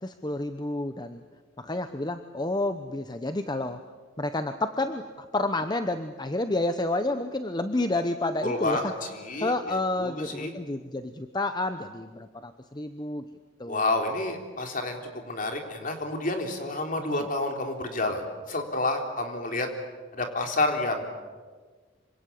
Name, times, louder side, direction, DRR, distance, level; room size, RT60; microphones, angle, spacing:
voice 1, 0.0-1.2 1.6-3.8 4.2-8.8 9.4-13.2 13.6-14.0 17.1-17.3, left 2 dB, 20° left, 9 dB, 0.9 m, -30 dB
voice 2, 8.4-10.5 13.7-18.2 18.5-19.7 20.1-21.1, left 2 dB, 45° left, 4 dB, 3.7 m, -29 dB
26.5 x 25.5 x 8.5 m, 1.4 s
head